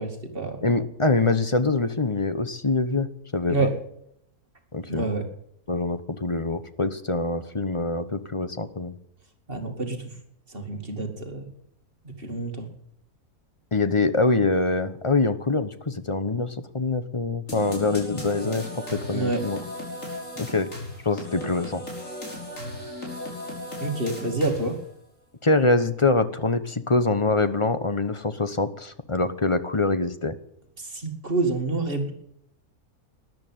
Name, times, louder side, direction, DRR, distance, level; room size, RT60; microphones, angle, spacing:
voice 1, 0.0-0.7 3.5-3.7 4.9-5.3 9.5-10.0 10.5-11.5 12.2-12.7 19.1-19.4 23.8-24.8 30.8-32.1, right 3 dB, 35° right, 4 dB, 2.5 m, -27 dB
voice 2, 0.6-3.1 3.3-3.7 4.7-5.1 5.7-8.9 13.7-19.6 20.4-20.7 21.0-21.8 25.4-30.3, left 3 dB, 25° left, 11 dB, 0.9 m, -24 dB
sound 1, 17.5-24.9, left 1 dB, 55° left, 5.8 m, -36 dB
13.5 x 11.0 x 9.2 m, 0.74 s
omnidirectional pair, 1.6 m